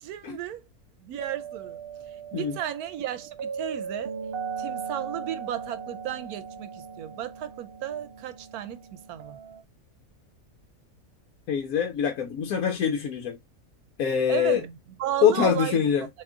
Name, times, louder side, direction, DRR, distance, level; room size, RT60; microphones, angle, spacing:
voice 1, 0.0-0.6 1.0-1.8 2.3-4.1 4.6-9.4 14.3-15.8, right 11 dB, 85° right, 1.1 m, -34 dB
sound 1, 1.2-9.6, right 6 dB, 65° right, 0.6 m, -38 dB
voice 2, 11.5-13.4 14.0-14.6 15.2-16.1, left 8 dB, 80° left, 1.1 m, -24 dB
3.6 x 2.9 x 3.5 m
omnidirectional pair, 1.5 m